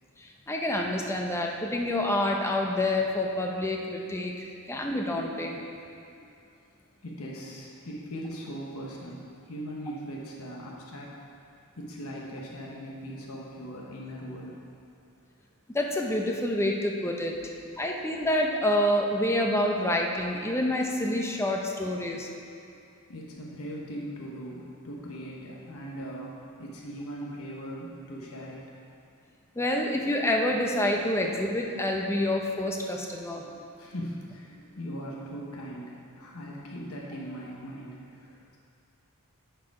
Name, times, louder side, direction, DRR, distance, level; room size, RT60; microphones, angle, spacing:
voice 1, 0.2-5.6 15.7-22.3 29.6-33.4, left 1 dB, 10° left, 1 dB, 0.7 m, -28 dB
voice 2, 7.0-11.1 11.8-14.6 23.1-28.6 33.3-38.6, equal, 75° left, -3 dB, 1.1 m, -40 dB
10.0 x 4.7 x 4.8 m, 2.4 s
head